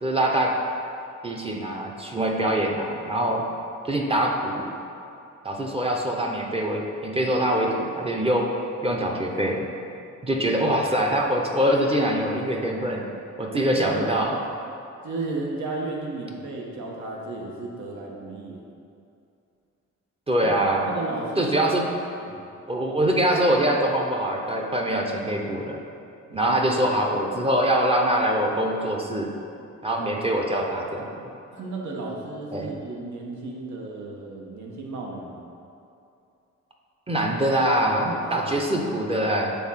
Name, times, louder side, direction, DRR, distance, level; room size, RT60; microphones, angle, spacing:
voice 1, 0.0-0.5 1.2-3.4 3.9-4.7 5.4-8.5 8.8-9.7 10.2-13.0 13.4-14.4 20.3-20.9 21.4-21.9 22.7-25.8 26.3-29.3 29.8-31.3 32.5-32.7 37.1-39.6, right 1 dB, 20° right, 0 dB, 0.7 m, -24 dB
voice 2, 13.5-14.2 15.0-18.6 20.4-20.5 20.8-21.6 22.2-22.5 26.3-26.8 29.9-30.2 31.5-35.5 37.9-38.7, right 3 dB, 75° right, -1 dB, 1.2 m, -34 dB
7.0 x 3.7 x 5.7 m, 2.6 s
cardioid pair, 130°, 29 cm